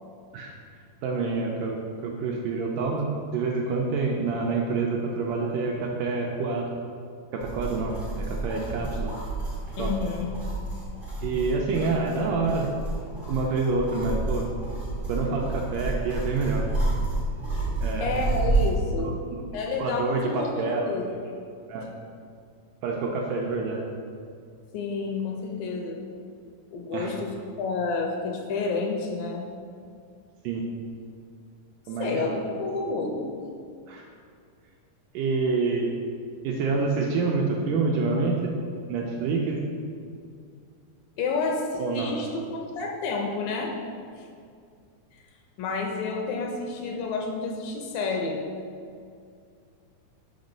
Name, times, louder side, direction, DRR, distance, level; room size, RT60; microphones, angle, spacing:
voice 1, 1.0-6.7 7.3-9.1 9.8-9.9 11.2-12.7 13.3-14.5 15.1-16.7 17.8-18.1 18.9-19.1 19.8-21.0 21.7-21.9 22.8-23.8 26.9-27.1 30.4-30.7 31.9-32.5 33.9-34.0 35.1-35.9 36.4-38.5 38.9-39.6 41.8-42.1, right 4 dB, 80° right, -1 dB, 2.0 m, -27 dB
sound 1, 7.4-18.8, right 2 dB, 60° right, 0.5 m, -30 dB
voice 2, 9.8-10.3 17.5-17.7 18.0-19.2 19.5-21.1 24.7-26.0 26.7-29.4 32.0-33.3 41.2-43.7 45.6-48.4, left 4 dB, 80° left, 0 dB, 2.2 m, -30 dB
6.0 x 5.3 x 5.1 m, 2.3 s
omnidirectional pair, 4.3 m